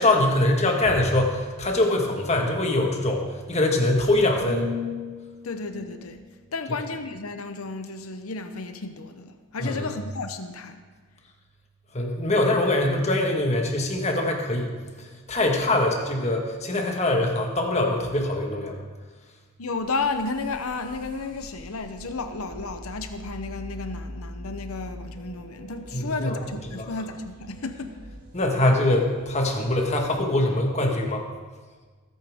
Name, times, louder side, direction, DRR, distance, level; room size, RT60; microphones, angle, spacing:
voice 1, 0.0-4.7 9.6-9.9 11.9-14.7 15.3-18.8 25.9-26.4 26.8-26.9 28.3-31.2, left 1 dB, 30° left, 2 dB, 1.6 m, -23 dB
sound 1, 4.4-8.3 8.8-9.1, left 4 dB, ahead, 4.2 m, -38 dB
voice 2, 5.4-6.2 6.5-10.8 19.6-27.9, left 3 dB, 90° left, 8 dB, 0.8 m, -32 dB
sound 2, 19.8-30.4, equal, 40° right, 2.1 m, -44 dB
20.0 x 8.7 x 3.6 m, 1.4 s
head